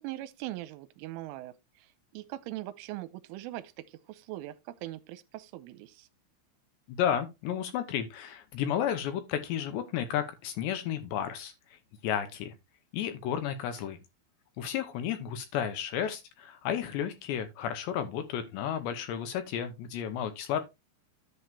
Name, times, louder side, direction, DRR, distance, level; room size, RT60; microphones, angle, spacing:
voice 1, 0.0-6.1, right 15 dB, 85° right, 3.1 m, -41 dB
voice 2, 6.9-12.5 12.9-14.0 14.6-20.6, left 9 dB, 75° left, 2.8 m, -32 dB
10.5 x 7.1 x 2.8 m
omnidirectional pair, 5.7 m